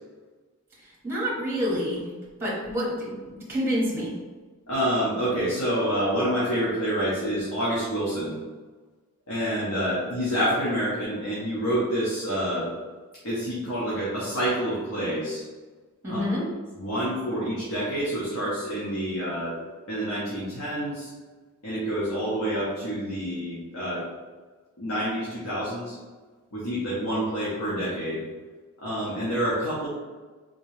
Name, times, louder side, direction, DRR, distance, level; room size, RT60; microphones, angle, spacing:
voice 1, 1.0-2.1 2.4-4.2 16.0-16.4, equal, 10° right, -5 dB, 0.9 m, -28 dB
voice 2, 4.7-8.4 9.3-12.7 13.2-15.4 16.1-16.2 16.8-19.6 19.9-21.1 21.6-24.0 24.8-26.0 26.5-28.2 28.8-29.9, equal, 75° left, -8 dB, 1.0 m, -27 dB
4.0 x 3.0 x 3.2 m, 1.4 s
head